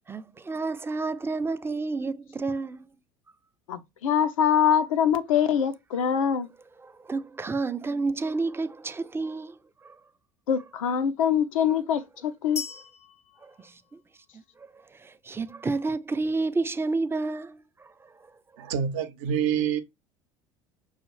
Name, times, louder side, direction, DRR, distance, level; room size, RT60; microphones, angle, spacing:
voice 1, 0.1-2.9 6.2-6.3 6.8-10.0 13.4-14.0 14.3-18.3, right 3 dB, 15° right, 0.4 m, -31 dB
voice 2, 3.7-6.5 10.5-12.6, left 8 dB, 80° left, 0.6 m, -24 dB
sound 1, 12.6-14.5, left 5 dB, 40° left, 0.5 m, -39 dB
voice 3, 18.6-19.8, right 8 dB, 70° right, 0.6 m, -26 dB
5.6 x 2.4 x 3.1 m
hypercardioid pair, 70°, 17 cm